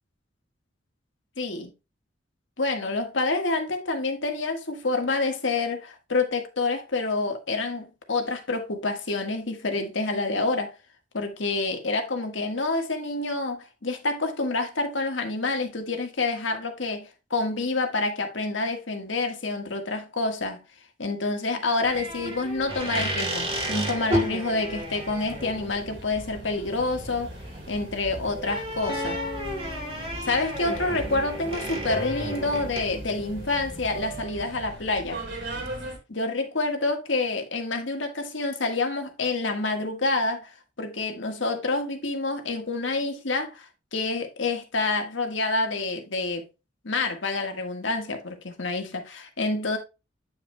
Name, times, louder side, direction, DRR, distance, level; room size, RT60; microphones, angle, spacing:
voice 1, 1.4-1.7 2.6-10.7 11.1-20.6 21.0-27.3 27.7-29.2 30.2-35.2 36.1-40.5 40.8-46.4 46.8-49.8, left 3 dB, 80° left, 1.6 m, -28 dB
sound 1, 21.8-34.2, equal, 30° right, 2.4 m, -33 dB
sound 2, 24.7-36.0, right 2 dB, 65° right, 2.7 m, -41 dB
sound 3, 28.9-30.8 31.9-34.3, left 2 dB, 60° left, 1.5 m, -39 dB
9.2 x 5.7 x 2.2 m
head